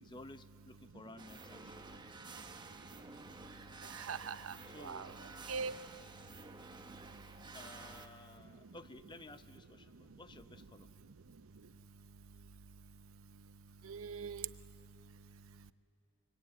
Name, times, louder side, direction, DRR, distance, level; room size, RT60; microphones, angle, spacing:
voice 1, 0.0-2.2 4.0-4.1 4.7-5.1 7.5-10.9, left 2 dB, 20° left, 11 dB, 0.7 m, -54 dB
sound 1, 1.2-8.1, right 3 dB, 20° right, 1.0 m, -52 dB
voice 2, 3.9-4.5 4.8-5.1 5.5-5.7 13.8-14.5, right 6 dB, 75° right, 13 dB, 0.7 m, -40 dB
25.5 x 24.0 x 9.3 m, 3.0 s
head